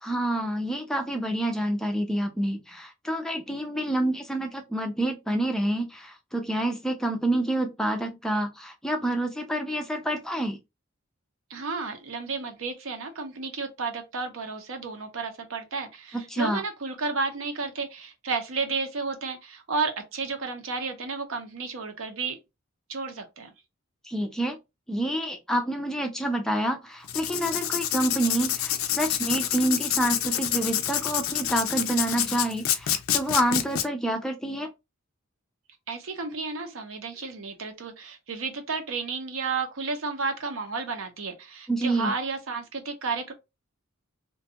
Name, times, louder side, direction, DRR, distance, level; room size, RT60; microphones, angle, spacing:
voice 1, 0.0-10.6 16.1-16.6 24.0-24.6 24.9-34.7 41.7-42.1, right 1 dB, 5° left, 0.3 m, -28 dB
voice 2, 11.5-22.4 22.9-23.5 35.9-43.3, right 4 dB, 70° right, 0.7 m, -32 dB
Writing, 27.0-33.8, left 11 dB, 75° left, 0.4 m, -27 dB
2.5 x 2.2 x 2.7 m
head